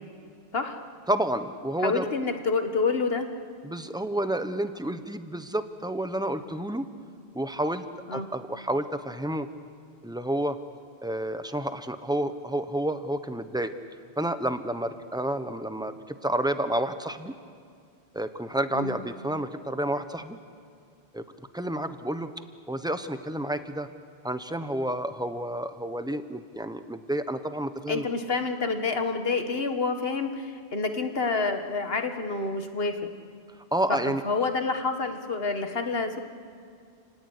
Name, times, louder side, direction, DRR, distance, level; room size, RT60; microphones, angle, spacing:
voice 1, 1.1-2.1 3.6-6.9 7.3-7.9 8.1-9.5 10.0-10.6 11.0-13.7 14.2-17.3 18.1-20.4 21.1-21.2 21.5-22.3 22.7-23.9 24.2-28.1 33.7-34.2, right 1 dB, 5° right, 9 dB, 1.0 m, -30 dB
voice 2, 1.8-3.3 8.1-8.3 18.7-19.0 27.9-33.0 33.9-36.2, left 4 dB, 60° left, 6 dB, 1.9 m, -28 dB
29.5 x 17.5 x 9.8 m, 2.2 s
omnidirectional pair, 1.1 m